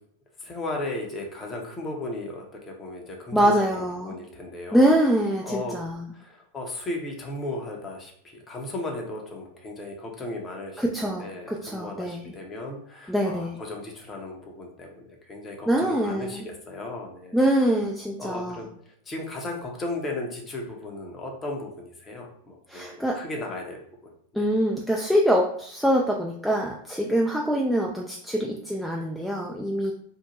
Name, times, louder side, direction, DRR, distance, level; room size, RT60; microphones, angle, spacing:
voice 1, 0.4-5.0 5.4-5.8 6.1-17.7 18.2-24.5, left 2 dB, 20° left, 1 dB, 0.7 m, -36 dB
voice 2, 3.3-4.1 4.7-6.0 10.8-12.3 13.1-13.6 15.7-16.4 17.3-18.6 22.7-23.2 24.3-29.9, equal, ahead, 0 dB, 0.3 m, -24 dB
2.7 x 2.1 x 2.9 m, 0.65 s
figure-of-eight pair, 95°, 0 cm